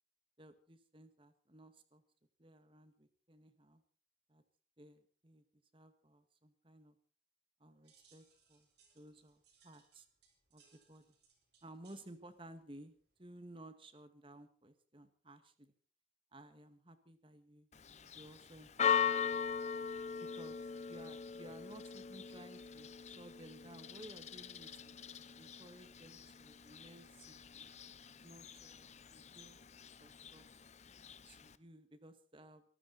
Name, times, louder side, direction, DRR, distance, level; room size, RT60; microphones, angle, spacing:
voice 1, 0.4-2.0 2.4-3.8 4.3-4.4 4.8-7.0 7.6-8.7 8.9-10.1 10.5-11.2 11.6-12.9 13.2-15.7 16.3-17.7 18.1-19.6 20.2-24.9 25.4-27.7 28.2-29.6 30.0-30.5 31.3-32.7, right 1 dB, 30° right, 10 dB, 1.9 m, -57 dB
sound 1, 7.8-13.6, right 6 dB, 70° right, 7.4 m, -71 dB
Church bell, 17.7-31.5, left 7 dB, 40° left, 0.8 m, -41 dB
24.5 x 13.0 x 4.2 m, 0.41 s
head